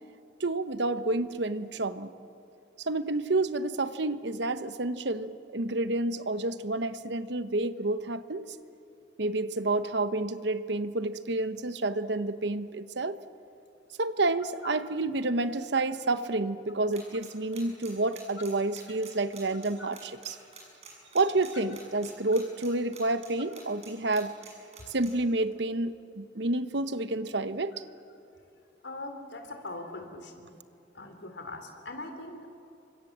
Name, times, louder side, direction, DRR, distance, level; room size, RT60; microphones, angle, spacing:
voice 1, 0.4-2.1 2.8-8.4 9.2-13.2 14.0-20.4 21.1-24.3 24.9-27.7, right 2 dB, 65° right, 12 dB, 1.0 m, -29 dB
sound 1, 16.9-23.9 24.1-25.1, right 7 dB, 35° right, 7.2 m, -47 dB
voice 2, 28.8-30.5 30.9-32.5, left 2 dB, 70° left, 6 dB, 3.5 m, -41 dB
29.0 x 25.0 x 7.5 m, 2.8 s
head